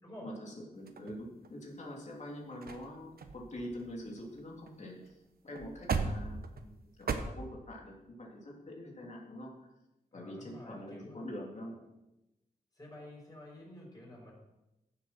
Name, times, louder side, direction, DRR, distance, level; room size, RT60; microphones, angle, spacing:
voice 1, 0.2-5.2 5.4-6.7 7.0-9.5 10.1-11.7, equal, 50° left, -2 dB, 3.2 m, -45 dB
sound 1, 0.9-1.7 2.3-2.4 2.6-2.9 3.2-4.7 5.0-5.1 5.5-7.2, right 5 dB, 80° right, 1.1 m, -37 dB
voice 2, 10.1-11.2 11.6-11.8 12.7-14.3, left 1 dB, 25° left, -3 dB, 5.9 m, -50 dB
15.0 x 7.6 x 6.1 m, 0.94 s
wide cardioid pair, 135°, 16 cm